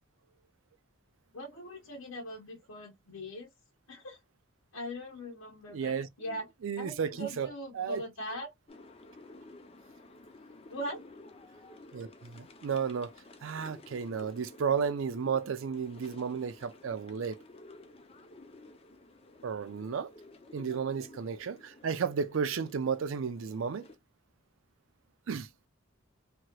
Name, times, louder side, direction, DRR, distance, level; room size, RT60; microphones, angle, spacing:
voice 1, 1.3-3.5 3.9-4.2 4.7-6.5 6.8-8.5 10.7-11.0 20.6-20.8, equal, 85° left, 0.9 m, -41 dB
voice 2, 5.7-6.1 6.6-7.5 7.8-8.0 11.9-13.1 13.4-17.4 19.4-20.1 20.5-23.9 25.3-25.5, right 6 dB, 75° right, 0.4 m, -33 dB
sound 1, 8.7-24.0, left 2 dB, 30° left, 0.5 m, -53 dB
2.9 x 2.9 x 2.2 m
head